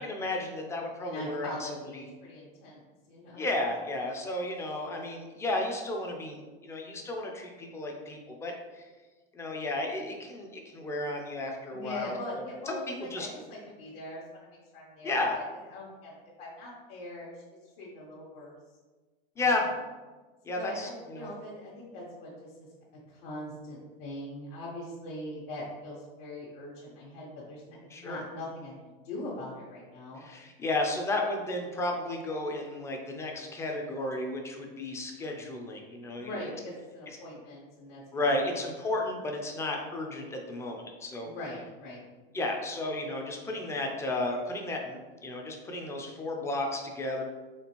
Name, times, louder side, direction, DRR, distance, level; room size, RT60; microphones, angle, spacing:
voice 1, 0.0-2.0 3.4-8.8 9.4-12.8 13.1-13.3 15.0-15.3 19.4-19.6 20.5-21.3 27.9-28.2 30.2-36.3 38.1-41.3 42.3-47.2, left 2 dB, 10° left, 1 dB, 0.3 m, -33 dB
voice 2, 1.0-2.8 3.1-3.5 11.7-15.4 15.7-18.5 19.4-19.5 20.5-22.7 23.1-30.2 36.1-38.3 41.2-42.0, left 1 dB, 75° left, -7 dB, 1.2 m, -42 dB
4.2 x 3.2 x 2.9 m, 1.3 s
supercardioid pair, 140°, 29 cm